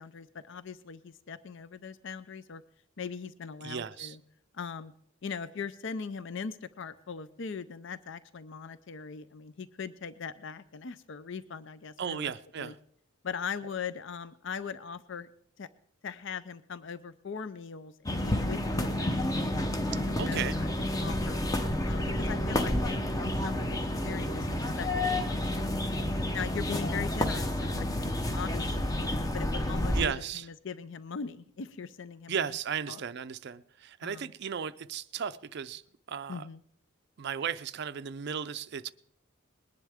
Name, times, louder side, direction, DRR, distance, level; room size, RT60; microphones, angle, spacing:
voice 1, 0.0-2.6 3.0-4.2 4.5-4.9 5.2-12.3 12.6-12.7 13.2-15.3 15.6-15.7 16.0-19.1 19.4-19.6 20.0-21.4 21.8-25.8 26.3-27.9 28.3-32.4 32.9-33.0 34.0-34.3 36.3-36.6, left 6 dB, 60° left, 0.5 m, -40 dB
voice 2, 3.6-4.2 12.0-12.7 20.2-20.6 29.9-30.5 32.3-35.8 36.1-36.5 37.2-38.9, right 7 dB, 50° right, 0.4 m, -35 dB
sound 1, 18.1-30.1, left 1 dB, 15° left, 0.7 m, -30 dB
20.5 x 10.5 x 3.5 m
head